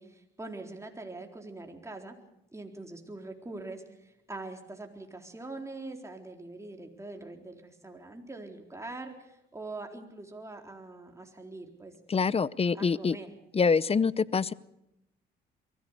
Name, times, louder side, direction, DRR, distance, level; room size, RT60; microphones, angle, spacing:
voice 1, 0.0-2.1 2.5-11.9 12.7-13.3, right 2 dB, 15° right, 3 dB, 4.0 m, -43 dB
voice 2, 12.1-13.2 13.5-14.5, left 5 dB, 30° left, 21 dB, 0.7 m, -25 dB
23.0 x 16.0 x 8.2 m, 0.85 s
cardioid pair, 75°, 20 cm